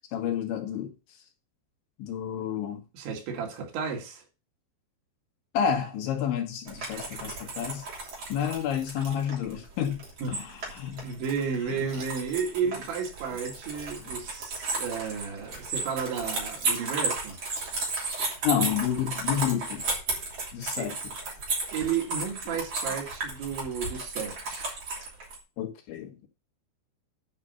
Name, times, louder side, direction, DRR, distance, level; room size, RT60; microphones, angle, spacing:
voice 1, 0.1-0.9 2.0-2.8 5.5-7.9 8.3-11.1 11.7-11.8 18.4-19.9 20.5-21.0 25.6-26.3, left 9 dB, 80° left, 4.0 m, -30 dB
voice 2, 2.9-4.2 10.2-10.3 11.0-17.4 20.8-20.9 21.7-24.8, right 6 dB, 80° right, 4.4 m, -32 dB
sound 1, 6.7-25.4, right 3 dB, 35° right, 3.6 m, -34 dB
11.0 x 5.3 x 5.7 m
omnidirectional pair, 5.2 m